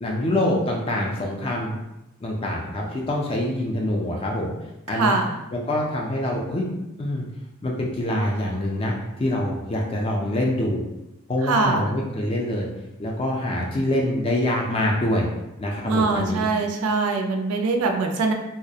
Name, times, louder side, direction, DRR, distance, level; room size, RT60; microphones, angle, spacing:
voice 1, 0.0-1.8 2.2-4.5 4.9-5.2 5.5-6.7 7.0-7.3 7.6-8.9 9.2-10.8 11.3-12.7 13.0-15.3 15.6-16.5, left 1 dB, 25° left, -1 dB, 0.3 m, -25 dB
voice 2, 4.9-5.4 11.4-11.9 15.8-18.3, right 3 dB, 80° right, 4 dB, 0.4 m, -23 dB
2.3 x 2.0 x 2.7 m, 0.93 s
head